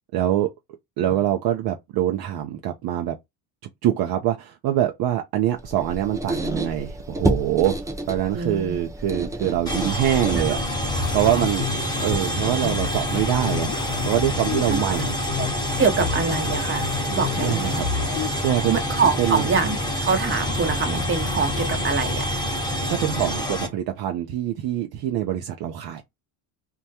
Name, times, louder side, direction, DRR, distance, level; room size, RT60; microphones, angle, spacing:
voice 1, 0.1-0.5 1.0-3.2 3.8-7.8 8.1-10.6 10.9-11.7 12.0-13.7 14.1-15.1 17.4-17.9 18.4-18.8 19.2-19.4 22.9-26.0, right 12 dB, 50° right, 0.6 m, -24 dB
Squeak, 5.6-10.8, right 2 dB, 5° right, 0.4 m, -29 dB
voice 2, 8.3-8.8 10.5-10.6 11.2-11.4 14.7-14.8 15.4-15.5 15.8-17.8 18.7-22.3, right 5 dB, 25° right, 0.9 m, -25 dB
sound 1, 9.6-23.7, left 1 dB, 10° left, 1.1 m, -27 dB
sound 2, 10.9-18.3, left 9 dB, 70° left, 0.5 m, -31 dB
2.2 x 2.1 x 2.7 m
supercardioid pair, 85°, 49 cm